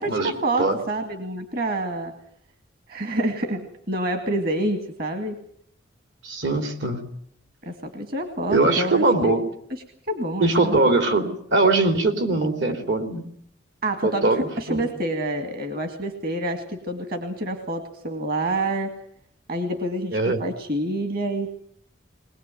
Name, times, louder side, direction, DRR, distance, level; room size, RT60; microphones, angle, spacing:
voice 1, 0.0-2.1 2.9-5.4 7.6-9.4 10.1-10.8 11.2-11.3 13.8-18.9 19.5-21.5, right 1 dB, 50° right, 7 dB, 2.2 m, -27 dB
voice 2, 6.2-7.0 8.5-9.4 10.4-13.2 14.0-14.9 20.1-20.4, right 2 dB, 70° right, 7 dB, 3.2 m, -21 dB
21.0 x 21.0 x 9.3 m, 0.64 s
head